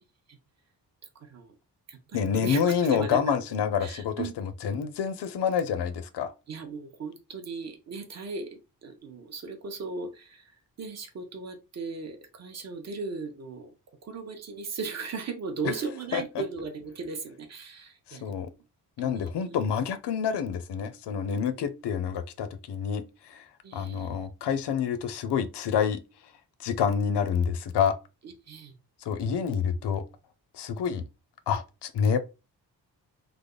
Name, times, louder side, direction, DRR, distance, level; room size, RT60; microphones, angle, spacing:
voice 1, 1.2-1.5 1.9-3.4 3.8-4.3 6.5-10.4 10.8-13.7 14.0-18.3 19.0-19.8 21.6-21.7 23.6-24.3 28.2-28.7, right 4 dB, 40° right, 0.7 m, -37 dB
voice 2, 2.1-6.3 16.1-16.4 18.1-18.5 19.0-23.4 23.7-26.0 26.6-27.9 29.1-30.0 30.5-31.0 31.5-32.2, left 7 dB, 90° left, 0.6 m, -28 dB
3.3 x 2.0 x 3.6 m
wide cardioid pair, 180°, 40 cm